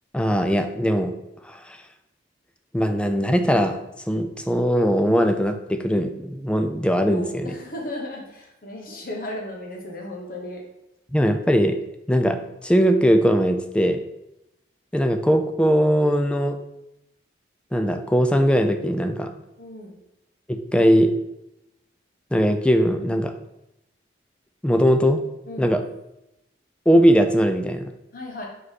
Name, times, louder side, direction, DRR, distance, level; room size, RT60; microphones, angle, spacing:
voice 1, 0.1-1.2 1.4-1.8 2.7-3.8 4.1-7.6 11.1-11.8 12.1-14.0 14.9-16.6 17.7-19.3 20.5-21.1 22.3-23.3 24.6-25.2 25.6-25.8 26.9-27.9, equal, 5° left, 6 dB, 0.4 m, -20 dB
voice 2, 7.0-10.6 19.6-20.0 25.5-25.7 28.1-28.5, left 1 dB, 50° left, 0 dB, 1.2 m, -35 dB
5.1 x 4.7 x 4.2 m, 0.89 s
head